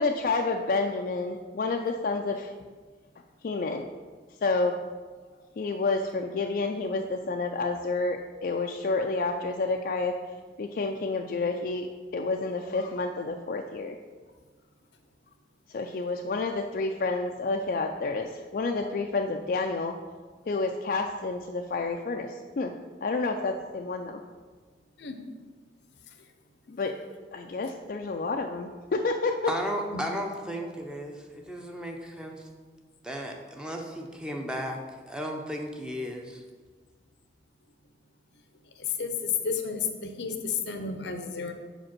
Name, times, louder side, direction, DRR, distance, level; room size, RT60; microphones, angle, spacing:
voice 1, 0.0-2.5 3.4-3.9 4.4-4.8 5.6-10.1 10.6-11.9 12.1-13.9 15.7-19.9 20.5-22.7 23.0-24.2 26.7-27.0 27.3-29.5, left 3 dB, 55° left, 3 dB, 0.4 m, -29 dB
voice 2, 29.5-32.4 33.0-34.8 35.1-36.4, equal, 5° right, 1 dB, 0.6 m, -34 dB
voice 3, 38.8-41.5, left 6 dB, 80° left, 7 dB, 0.7 m, -31 dB
5.1 x 5.0 x 6.0 m, 1.5 s
head